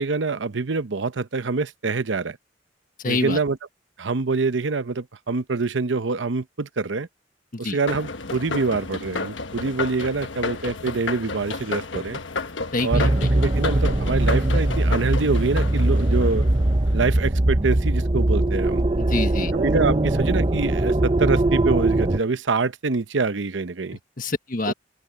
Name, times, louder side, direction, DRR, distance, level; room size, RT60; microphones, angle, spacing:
voice 1, 0.0-2.4 3.0-3.6 4.0-7.1 7.6-12.2 12.8-16.5 16.9-18.8 19.5-24.0 24.7-24.8, right 4 dB, 85° right, 0.8 m, -25 dB
voice 2, 3.0-3.4 7.5-7.8 12.7-13.3 19.0-19.5 24.2-24.7, left 2 dB, 50° left, 1.4 m, -26 dB
sound 1, 7.9-17.0, left 3 dB, 85° left, 1.3 m, -32 dB
sound 2, 12.9-22.2, right 1 dB, 30° right, 0.9 m, -21 dB
open air
head